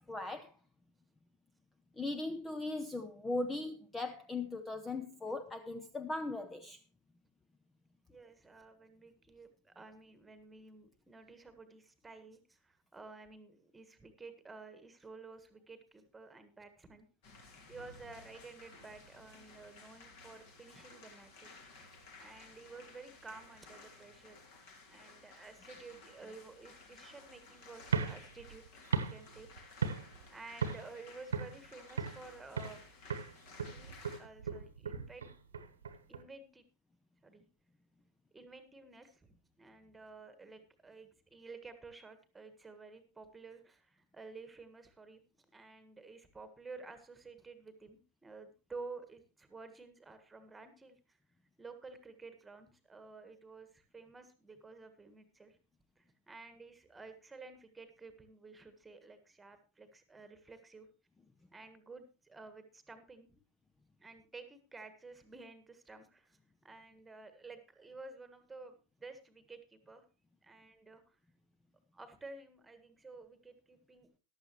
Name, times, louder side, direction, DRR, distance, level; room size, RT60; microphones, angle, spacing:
voice 1, 0.1-0.5 2.0-6.8, left 2 dB, 10° left, 0.7 m, -38 dB
voice 2, 8.1-17.1 17.7-21.6 22.2-24.4 24.9-28.6 29.0-29.5 30.3-32.8 33.7-35.3 36.1-36.7 37.2-37.5 38.3-45.2 45.5-51.2 51.6-55.6 56.0-60.9 61.5-63.4 64.0-70.0 70.4-71.2 71.9-74.2, right 3 dB, 10° right, 1.6 m, -52 dB
sound 1, 17.2-34.2, left 3 dB, 50° left, 2.7 m, -56 dB
sound 2, 27.8-30.3 30.6-31.0 31.3-32.3 32.6-32.8 33.1-36.2, right 6 dB, 70° right, 1.2 m, -37 dB
14.5 x 11.5 x 3.0 m
figure-of-eight pair, 90°, 0 cm